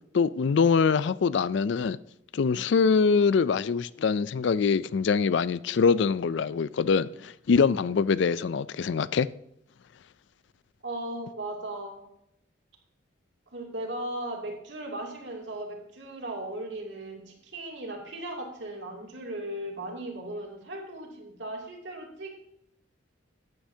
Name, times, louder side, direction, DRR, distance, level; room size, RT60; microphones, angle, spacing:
voice 1, 0.1-2.0 2.3-9.3, left 5 dB, 65° left, 0.4 m, -24 dB
voice 2, 10.8-12.1 13.5-22.3, right 1 dB, 65° right, 2.7 m, -37 dB
14.5 x 9.5 x 2.8 m
head